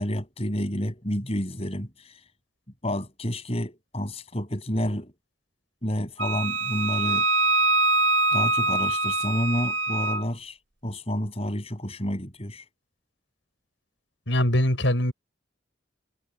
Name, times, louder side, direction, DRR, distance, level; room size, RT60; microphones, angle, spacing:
voice 1, 0.0-2.2 2.8-5.1 5.8-7.3 8.3-10.6 10.8-12.6, equal, 30° left, 7.8 m, -29 dB
Wind instrument woodwind instrument, 6.2-10.2, right 2 dB, 80° right, 2.4 m, -24 dB
voice 2, 14.3-15.1, left 1 dB, 85° left, 5.8 m, -22 dB
head